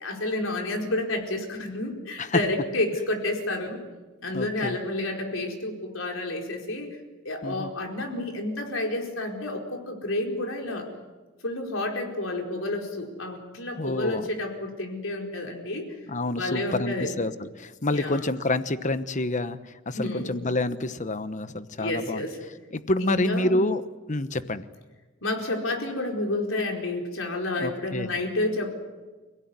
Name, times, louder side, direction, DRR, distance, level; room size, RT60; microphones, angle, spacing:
voice 1, 0.0-3.8 4.2-7.0 7.2-10.9 11.4-15.9 16.4-17.1 17.8-18.2 19.9-20.4 21.8-22.4 23.0-23.6 25.2-28.7, left 2 dB, 70° left, 2 dB, 4.7 m, -30 dB
voice 2, 4.3-4.8 7.4-7.7 13.8-14.3 16.1-22.2 22.7-23.8 24.1-24.7 27.6-28.1, left 2 dB, 35° left, 12 dB, 1.0 m, -28 dB
29.0 x 17.0 x 9.7 m, 1.3 s
head